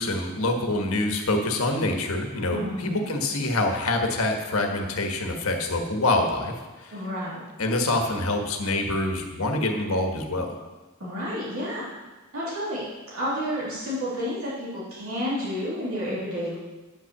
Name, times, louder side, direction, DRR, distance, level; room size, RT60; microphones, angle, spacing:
voice 1, 0.0-6.9 7.6-10.6, left 2 dB, 70° left, 3 dB, 1.4 m, -26 dB
voice 2, 2.5-3.0 6.9-7.4 11.0-11.9 12.3-16.6, equal, 70° right, -8 dB, 3.4 m, -30 dB
9.4 x 5.8 x 7.1 m, 1.2 s
head